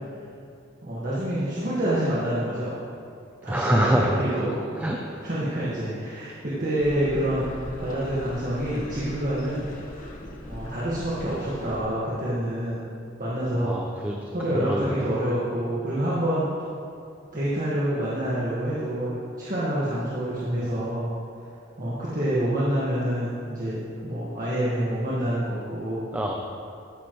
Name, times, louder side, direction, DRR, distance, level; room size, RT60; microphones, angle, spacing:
voice 1, 0.8-2.7 3.4-4.8 5.2-7.5 7.8-9.7 10.5-12.8 13.2-14.0 14.3-16.4 17.3-21.1 21.8-26.0, right 1 dB, 45° right, -8 dB, 1.6 m, -27 dB
voice 2, 3.5-4.4 4.8-5.1 13.6-14.2 14.5-15.0 20.5-20.6 26.1-26.3, right 1 dB, 10° right, 0 dB, 0.5 m, -25 dB
sound 1, 6.8-11.8, left 1 dB, 45° left, 1.3 m, -40 dB
12.5 x 9.3 x 3.1 m, 2.5 s
head